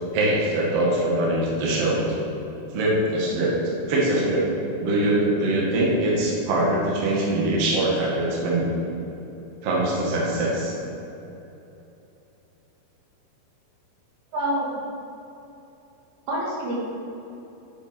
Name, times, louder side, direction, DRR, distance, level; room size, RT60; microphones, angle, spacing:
voice 1, 0.1-2.0 2.7-3.5 3.9-4.5 4.8-8.7 9.6-10.8, right 1 dB, 50° right, -4 dB, 2.1 m, -22 dB
voice 2, 14.3-14.7 16.3-16.7, right 1 dB, 75° right, -5 dB, 3.5 m, -26 dB
10.0 x 6.8 x 4.4 m, 2.9 s
omnidirectional pair, 4.6 m